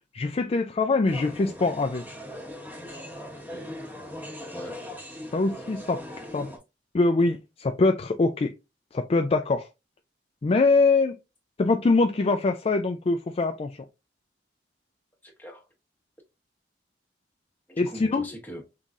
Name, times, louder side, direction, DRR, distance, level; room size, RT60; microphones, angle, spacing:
voice 1, 0.1-2.0 5.3-6.0 6.3-6.5 6.9-8.5 8.9-9.7 10.4-11.2 11.6-13.9 17.8-18.2, left 3 dB, 35° left, 0.3 m, -23 dB
sound 1, 1.1-6.6, left 1 dB, 10° right, 1.3 m, -40 dB
voice 2, 3.3-3.6 4.5-4.8 15.2-15.7 17.7-18.6, equal, 10° left, 1.2 m, -42 dB
5.6 x 3.7 x 2.4 m
head